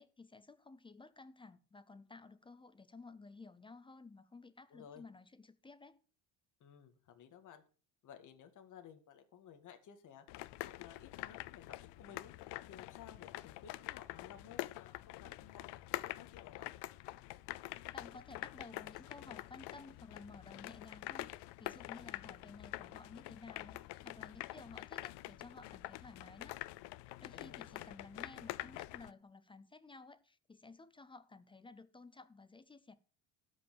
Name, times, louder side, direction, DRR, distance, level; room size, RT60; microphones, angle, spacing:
voice 1, 0.0-6.0 17.9-21.3 21.6-26.6 27.2-32.9, left 3 dB, 10° left, 0.5 m, -55 dB
voice 2, 4.7-5.1 6.6-7.6 8.0-10.3 10.6-12.3 12.7-16.7 27.3-27.9, left 8 dB, 40° left, 1.9 m, -56 dB
sound 1, 10.3-29.1, left 18 dB, 60° left, 0.7 m, -46 dB
12.5 x 5.8 x 7.1 m
cardioid pair, 160°, 47 cm